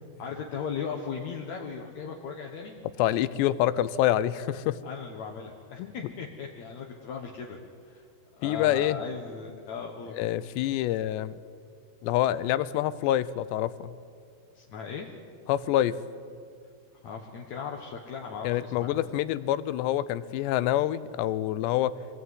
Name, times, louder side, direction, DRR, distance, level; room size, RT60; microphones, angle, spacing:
voice 1, 0.2-2.8 4.8-7.6 7.8-8.0 8.4-10.1 14.5-15.1 17.0-19.0, left 6 dB, 60° left, 0 dB, 2.0 m, -37 dB
voice 2, 3.0-4.8 8.4-9.0 10.1-11.3 12.0-13.9 15.5-16.0 18.4-22.0, left 13 dB, 80° left, 16 dB, 2.9 m, -26 dB
25.5 x 18.5 x 9.6 m, 2.3 s
omnidirectional pair, 5.1 m